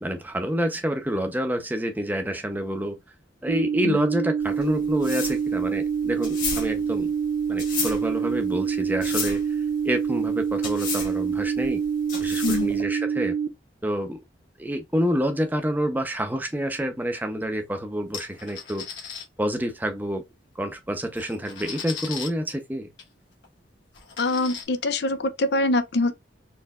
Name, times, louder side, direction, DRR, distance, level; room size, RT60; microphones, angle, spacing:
voice 1, 0.0-3.0 3.4-7.1 7.5-9.4 9.8-11.8 12.2-13.3 13.8-14.2 14.6-18.9 19.4-20.2 20.6-22.9, equal, 10° right, 0.7 m, -28 dB
sound 1, 3.5-13.5, right 6 dB, 50° right, 0.5 m, -26 dB
sound 2, 4.4-12.8, left 5 dB, 50° left, 1.8 m, -33 dB
sound 3, 18.1-19.2 20.5-20.6 21.0-22.3 23.0-23.1 23.4-23.5 23.9-24.6, left 6 dB, 90° left, 1.3 m, -37 dB
voice 2, 24.2-26.1, left 2 dB, 65° left, 0.6 m, -24 dB
4.3 x 3.2 x 2.4 m
head